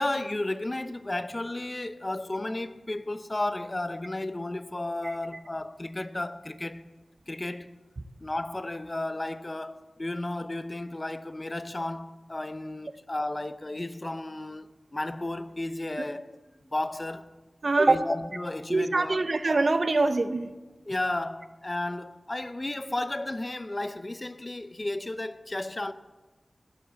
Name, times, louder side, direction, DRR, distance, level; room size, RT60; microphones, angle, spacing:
voice 1, 0.0-6.9 7.3-7.7 8.2-16.4 16.6-17.3 17.9-19.3 20.9-25.9, left 2 dB, 30° left, 0.8 m, -33 dB
voice 2, 17.6-18.1 18.7-20.5, right 3 dB, 55° right, 0.9 m, -24 dB
16.0 x 10.5 x 7.1 m
wide cardioid pair, 75°, 0 cm